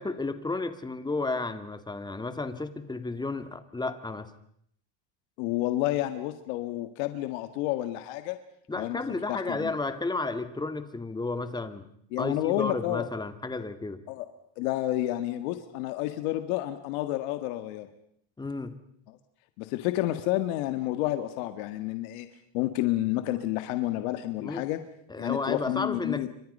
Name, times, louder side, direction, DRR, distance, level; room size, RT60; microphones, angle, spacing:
voice 1, 0.0-4.3 8.7-11.9 12.2-14.0 18.4-18.7 24.4-24.6 25.1-26.3, left 3 dB, 10° left, 9 dB, 2.1 m, -32 dB
voice 2, 5.4-8.4 8.7-9.0 9.3-9.7 12.1-13.0 14.1-14.3 14.6-17.9 19.6-22.3 22.5-24.8 25.2-26.3, left 15 dB, 80° left, 9 dB, 1.8 m, -30 dB
30.0 x 25.5 x 5.5 m, 0.68 s
cardioid pair, 125°, 40 cm